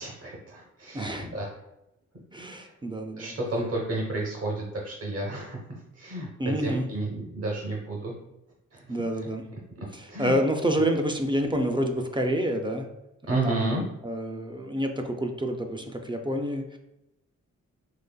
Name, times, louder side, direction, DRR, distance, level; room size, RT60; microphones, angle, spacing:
voice 1, 0.0-1.5 3.2-5.6 6.0-8.1 8.7-9.0 10.1-10.3 13.3-13.8, right 2 dB, 50° right, -2 dB, 0.8 m, -31 dB
voice 2, 0.9-1.3 2.3-3.3 6.4-6.9 8.9-9.5 9.9-12.9 13.4-16.8, equal, 15° right, 4 dB, 0.4 m, -28 dB
4.0 x 2.9 x 2.2 m, 0.89 s
cardioid pair, 60°, 31 cm